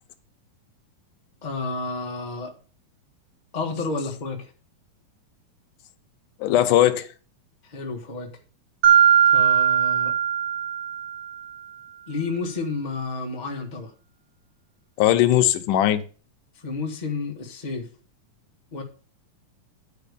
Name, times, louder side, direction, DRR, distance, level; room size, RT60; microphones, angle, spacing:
voice 1, 1.4-2.5 3.5-4.5 7.6-8.3 9.2-10.1 12.1-13.9 16.5-17.9 18.7-18.8, left 3 dB, 50° left, 0.5 m, -31 dB
voice 2, 6.4-7.1 15.0-16.0, left 12 dB, 75° left, 2.3 m, -19 dB
Mallet percussion, 8.8-11.4, right 8 dB, 55° right, 1.4 m, -19 dB
10.5 x 4.9 x 6.9 m
omnidirectional pair, 3.9 m